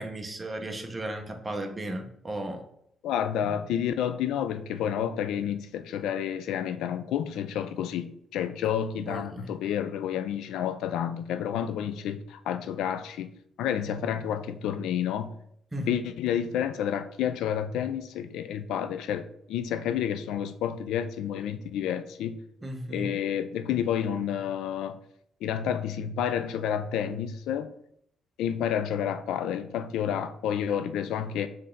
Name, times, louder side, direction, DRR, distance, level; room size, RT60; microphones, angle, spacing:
voice 1, 0.0-2.6 9.1-9.5 15.7-16.0 22.6-23.2, right 1 dB, 20° right, 0.8 m, -35 dB
voice 2, 3.0-13.3 13.6-15.3 15.8-22.4 22.9-25.0 25.4-27.7 28.4-31.5, left 9 dB, 85° left, 0.4 m, -30 dB
4.2 x 3.3 x 3.8 m
cardioid pair, 90°, 0 cm